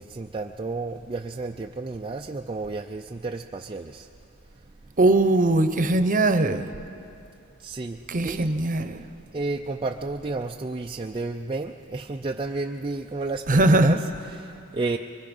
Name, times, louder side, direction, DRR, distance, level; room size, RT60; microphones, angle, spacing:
voice 1, 0.0-4.1 7.6-8.5 9.3-15.0, right 3 dB, 25° right, 3 dB, 0.5 m, -32 dB
voice 2, 5.0-6.7 8.1-9.0 13.5-14.0, right 2 dB, 40° right, 9 dB, 0.9 m, -20 dB
25.0 x 23.5 x 5.4 m, 2.7 s
head